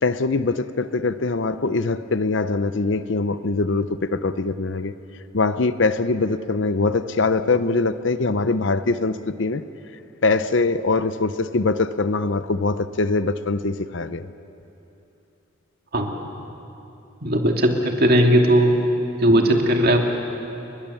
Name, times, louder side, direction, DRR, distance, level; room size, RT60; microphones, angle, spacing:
voice 1, 0.0-4.9 5.3-9.6 10.2-14.3, left 3 dB, 60° left, 12 dB, 0.7 m, -22 dB
voice 2, 17.2-18.7 19.2-20.0, right 1 dB, 45° right, 2 dB, 2.5 m, -17 dB
29.5 x 21.5 x 7.1 m, 2.9 s
head